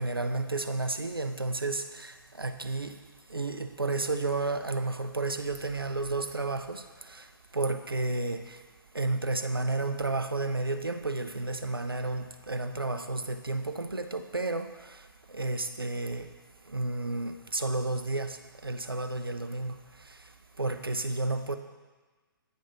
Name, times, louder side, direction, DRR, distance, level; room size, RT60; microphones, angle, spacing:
voice 1, 0.0-3.0 3.3-7.3 7.5-8.6 8.9-15.0 15.3-16.3 16.7-19.8 20.6-21.6, right 2 dB, 85° right, 8 dB, 0.6 m, -32 dB
9.2 x 4.8 x 5.5 m, 1.3 s
figure-of-eight pair, 125°, 12 cm